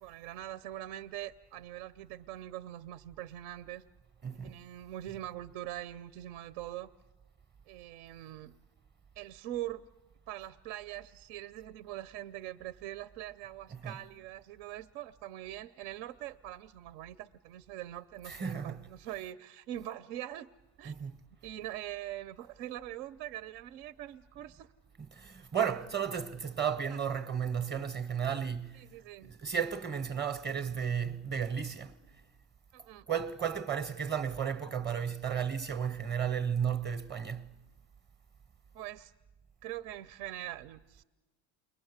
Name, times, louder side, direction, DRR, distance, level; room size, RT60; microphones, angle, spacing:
voice 1, 0.0-3.8 4.3-6.9 7.7-8.5 9.2-9.9 10.3-20.5 20.8-20.9 21.4-24.7 26.9-27.0 28.7-29.3 32.7-33.1 38.7-39.1 39.6-41.0, right 13 dB, 80° right, 0.7 m, -43 dB
voice 2, 4.2-4.6 13.7-14.0 18.3-18.8 20.8-21.2 25.1-28.8 29.3-31.9 33.1-37.5, right 8 dB, 25° right, 0.8 m, -33 dB
29.0 x 21.5 x 8.0 m
cardioid pair, 135°, 43 cm